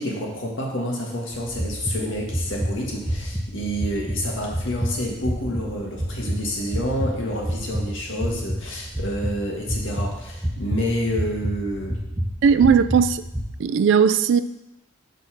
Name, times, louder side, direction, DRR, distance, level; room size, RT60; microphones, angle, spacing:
voice 1, 0.0-12.0, equal, 85° left, -1 dB, 1.6 m, -28 dB
sound 1, 1.3-13.4, equal, 10° right, 0.7 m, -29 dB
voice 2, 12.4-13.2 13.6-14.4, right 6 dB, 75° right, 13 dB, 0.3 m, -17 dB
5.4 x 4.3 x 6.0 m, 0.86 s
head